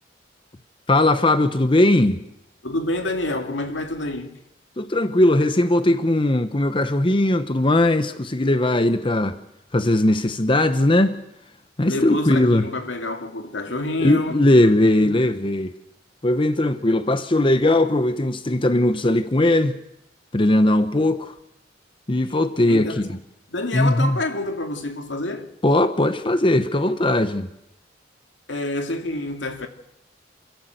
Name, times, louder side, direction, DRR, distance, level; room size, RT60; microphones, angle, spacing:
voice 1, 0.9-2.2 4.8-9.4 9.7-11.2 11.8-12.6 14.0-15.7 16.2-19.8 20.3-21.3 22.1-23.0 23.7-24.2 25.6-27.5, left 1 dB, 30° left, 0.9 m, -19 dB
voice 2, 2.6-4.4 11.8-15.2 22.7-23.0 23.5-25.5 28.5-29.7, left 2 dB, 85° left, 2.4 m, -28 dB
28.0 x 15.0 x 7.9 m
head